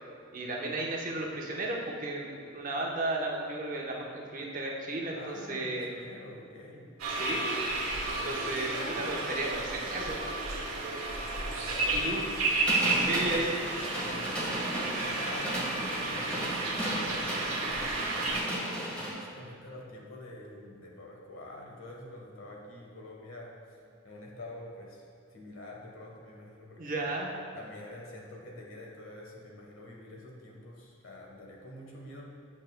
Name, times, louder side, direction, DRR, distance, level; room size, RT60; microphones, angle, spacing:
voice 1, 0.3-5.9 7.1-7.6 8.1-10.2 11.9-12.2 13.0-13.5 26.8-27.3, right 2 dB, 40° right, -1 dB, 0.8 m, -34 dB
voice 2, 5.1-6.9 11.4-12.5 12.8-13.4 14.0-18.5 19.0-25.1 25.3-27.0 27.5-32.3, left 1 dB, 80° left, -1 dB, 1.3 m, -46 dB
sound 1, 7.0-18.4, right 2 dB, 90° right, 1.4 m, -32 dB
sound 2, 12.6-19.1, equal, 5° left, 1.4 m, -35 dB
8.8 x 6.3 x 2.2 m, 2.4 s
head